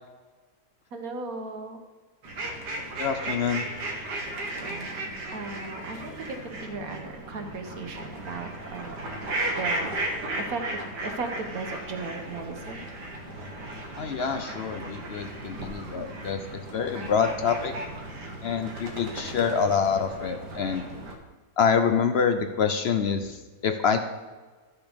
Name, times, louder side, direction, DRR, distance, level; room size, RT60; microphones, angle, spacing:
voice 1, 0.9-1.8 4.5-9.2 9.5-12.8, right 3 dB, 60° right, 5 dB, 1.5 m, -37 dB
sound 1, 2.2-21.2, right 1 dB, 80° right, 1.9 m, -35 dB
voice 2, 3.0-3.7 14.0-17.7 18.4-20.8 21.6-24.0, left 6 dB, 60° left, 8 dB, 0.6 m, -26 dB
13.0 x 6.2 x 5.2 m, 1.3 s
omnidirectional pair, 1.8 m